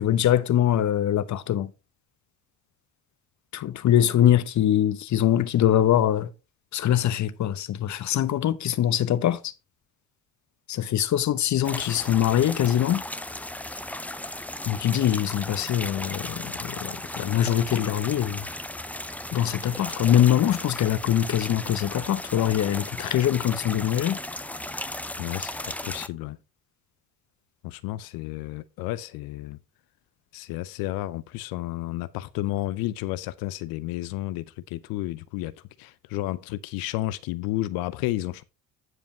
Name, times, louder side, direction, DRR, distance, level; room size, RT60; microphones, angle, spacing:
voice 1, 0.0-1.7 3.5-6.3 6.7-9.5 10.7-13.0 14.6-18.4 19.3-24.2, left 11 dB, 50° left, 1.0 m, -23 dB
sound 1, 11.6-26.1, left 1 dB, 5° left, 0.6 m, -36 dB
voice 2, 25.2-26.4 27.6-29.6 30.3-35.5 35.8-38.4, left 16 dB, 70° left, 0.7 m, -32 dB
9.7 x 5.1 x 4.4 m
hypercardioid pair, 65°, 37 cm